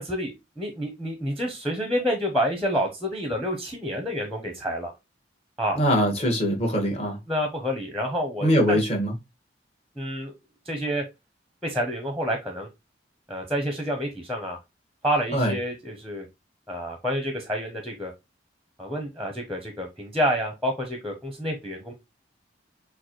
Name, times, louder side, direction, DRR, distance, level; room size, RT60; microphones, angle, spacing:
voice 1, 0.0-4.9 5.6-5.8 7.3-8.8 10.0-10.3 10.6-11.0 11.6-12.7 13.3-14.6 15.0-16.3 16.7-18.1 18.8-21.9, equal, ahead, 0.8 m, -28 dB
voice 2, 5.7-7.2 8.4-9.1 15.3-15.5, equal, 35° left, 1.5 m, -22 dB
6.6 x 2.3 x 3.1 m
head